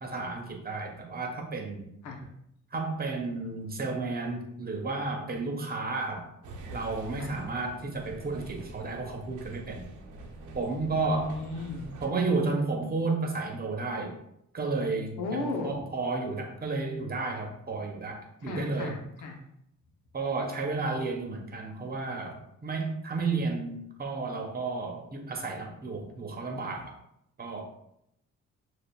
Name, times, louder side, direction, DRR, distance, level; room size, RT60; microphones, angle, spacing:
voice 1, 0.0-1.9 2.7-6.3 6.7-9.8 10.5-11.4 12.0-14.1 14.5-18.9 20.1-27.0 27.4-27.6, right 3 dB, 30° right, 1 dB, 1.0 m, -32 dB
sound 1, 6.4-12.1, right 2 dB, 75° right, 0.8 m, -45 dB
voice 2, 11.0-11.9 15.2-15.8 18.4-19.4, left 3 dB, 80° left, 2 dB, 0.9 m, -35 dB
6.4 x 2.5 x 2.3 m, 0.75 s
cardioid pair, 90°, 30 cm